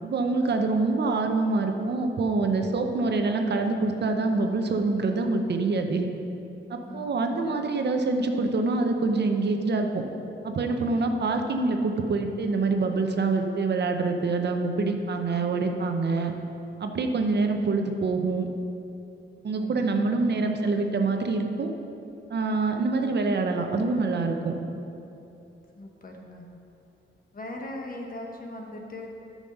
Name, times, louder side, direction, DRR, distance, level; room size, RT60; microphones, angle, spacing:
voice 1, 0.0-6.1 6.7-10.0 10.4-16.3 16.8-18.5 19.4-21.7 22.3-24.5, right 3 dB, 60° right, 4 dB, 0.8 m, -25 dB
voice 2, 0.6-1.0 6.8-7.7 17.2-17.7 19.5-20.8 25.7-26.5 27.3-29.1, left 1 dB, 45° left, 1 dB, 1.3 m, -41 dB
9.9 x 6.4 x 5.4 m, 2.8 s
cardioid pair, 100°, 20 cm